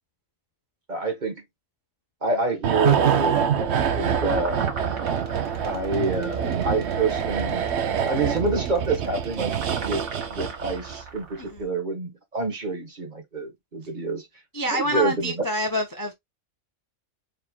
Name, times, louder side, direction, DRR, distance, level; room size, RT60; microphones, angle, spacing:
voice 1, 0.9-1.4 2.2-4.6 5.6-7.6 8.1-9.5 9.8-14.3 14.7-15.3, right 3 dB, 35° right, 1.4 m, -27 dB
sound 1, 2.6-11.2 11.4-11.6, right 8 dB, 60° right, 0.9 m, -25 dB
sound 2, 3.4-11.5, right 4 dB, 80° right, 1.8 m, -38 dB
voice 2, 11.4-11.7 14.5-16.1, equal, 20° left, 0.6 m, -27 dB
4.4 x 3.7 x 2.2 m
omnidirectional pair, 1.4 m